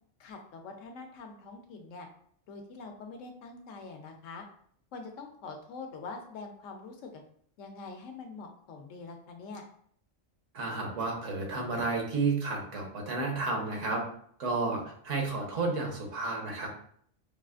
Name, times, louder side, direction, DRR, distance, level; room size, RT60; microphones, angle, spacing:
voice 1, 0.2-2.1 2.5-4.4 4.9-7.2 7.6-9.6, left 4 dB, 85° left, 4 dB, 1.0 m, -44 dB
voice 2, 10.5-14.0 14.4-16.7, right 3 dB, 80° right, 1 dB, 1.3 m, -31 dB
5.1 x 2.4 x 2.4 m, 0.62 s
omnidirectional pair, 1.3 m